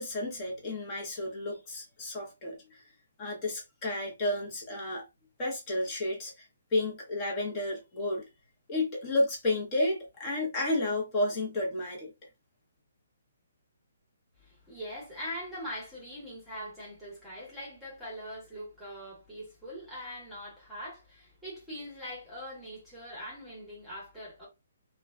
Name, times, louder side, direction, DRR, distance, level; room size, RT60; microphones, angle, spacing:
voice 1, 0.0-2.8 3.2-5.0 5.4-8.2 8.7-12.1, left 2 dB, 25° left, 1.1 m, -31 dB
voice 2, 14.4-24.5, equal, ahead, 1.3 m, -42 dB
3.0 x 2.4 x 2.2 m
hypercardioid pair, 160°, 0 cm